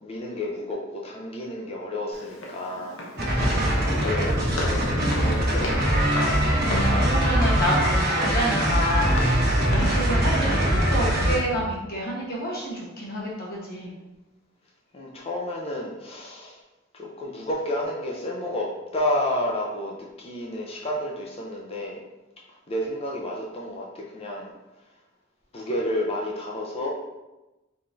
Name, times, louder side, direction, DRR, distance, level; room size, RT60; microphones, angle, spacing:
voice 1, 0.0-6.0 14.9-16.6 16.9-22.0 22.7-24.5 25.5-26.9, left 1 dB, 30° left, -2 dB, 0.5 m, -31 dB
Walk footsteps, 2.1-10.1, left 1 dB, 75° left, 0.8 m, -37 dB
sound 1, 3.2-11.4, right 1 dB, 55° right, 1.2 m, -22 dB
voice 2, 6.6-13.9, equal, 50° left, -4 dB, 1.1 m, -29 dB
4.2 x 3.8 x 2.6 m, 1.0 s
head